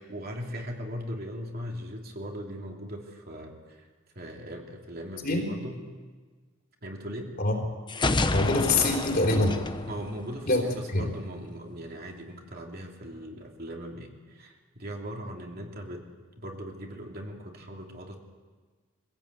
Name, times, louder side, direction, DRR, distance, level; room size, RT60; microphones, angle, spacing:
voice 1, 0.0-3.9 4.1-5.8 6.8-7.3 9.8-16.0 16.4-18.3, equal, 50° right, 1 dB, 2.9 m, -39 dB
sound 1, 7.9-10.7, left 2 dB, 25° left, 0.8 m, -29 dB
voice 2, 8.3-9.6 10.5-10.6 10.9-11.1, left 2 dB, 45° left, 1 dB, 4.0 m, -24 dB
23.0 x 16.5 x 8.3 m, 1.4 s
head